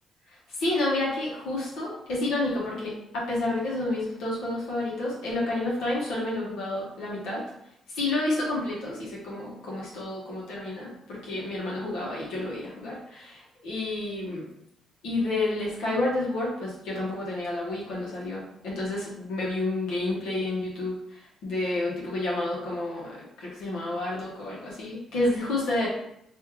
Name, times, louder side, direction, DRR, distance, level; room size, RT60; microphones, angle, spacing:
voice 1, 0.5-7.4 7.9-14.5 15.0-25.9, left 2 dB, 85° left, -5 dB, 1.1 m, -30 dB
3.1 x 2.7 x 3.6 m, 0.77 s
cardioid pair, 90°, 0 cm